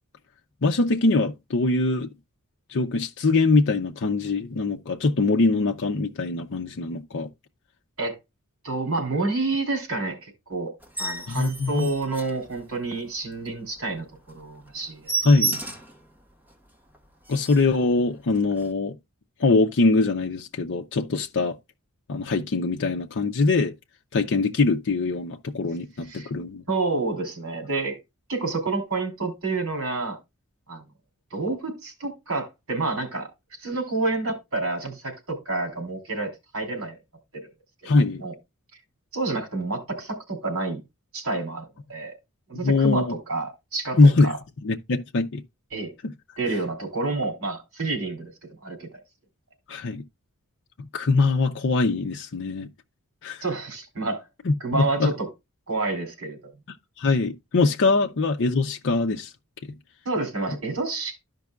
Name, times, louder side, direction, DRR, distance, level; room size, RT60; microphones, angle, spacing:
voice 1, 0.6-2.1 2.7-7.3 11.3-11.9 15.2-15.6 17.3-18.9 19.4-21.6 22.1-23.7 24.1-26.6 37.9-38.2 42.6-43.1 44.0-44.3 44.6-45.4 49.7-50.0 50.9-52.7 53.2-53.4 54.5-55.1 57.0-59.3, left 3 dB, 55° left, 0.6 m, -22 dB
voice 2, 8.6-10.7 11.0-15.1 26.1-26.3 26.7-28.0 28.3-30.2 30.7-30.8 31.3-33.3 33.6-37.0 37.3-37.4 38.2-38.3 39.1-40.8 41.1-42.1 42.5-44.4 45.7-45.9 46.4-48.3 48.6-48.9 53.4-54.2 54.6-55.3 55.7-56.4 60.0-61.2, right 3 dB, 65° right, 3.2 m, -29 dB
sound 1, 10.8-13.0 13.4-13.5 13.9-14.0 14.3-14.4 14.7-16.0 16.5-16.6 16.9-17.0 17.2-17.8 18.5-18.7, right 3 dB, 10° right, 1.3 m, -32 dB
13.5 x 5.3 x 2.3 m
head